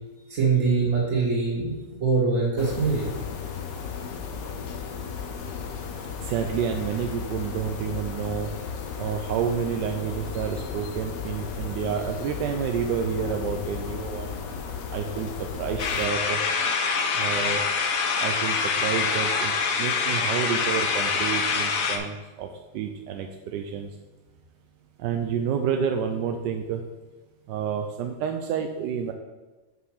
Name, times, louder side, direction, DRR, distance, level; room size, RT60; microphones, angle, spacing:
voice 1, 0.3-1.7 2.0-3.1, right 4 dB, 50° right, -8 dB, 2.4 m, -23 dB
sound 1, 2.6-16.1, left 6 dB, 80° left, 1.5 m, -35 dB
voice 2, 6.2-8.5 9.0-14.3 14.9-16.4 17.1-17.6 18.2-22.5 22.7-23.9 25.0-26.8 27.5-29.1, right 7 dB, 85° right, 5 dB, 1.2 m, -29 dB
sound 2, 15.8-22.0, left 5 dB, 60° left, 1.2 m, -25 dB
5.8 x 5.7 x 6.3 m, 1.2 s
omnidirectional pair, 1.9 m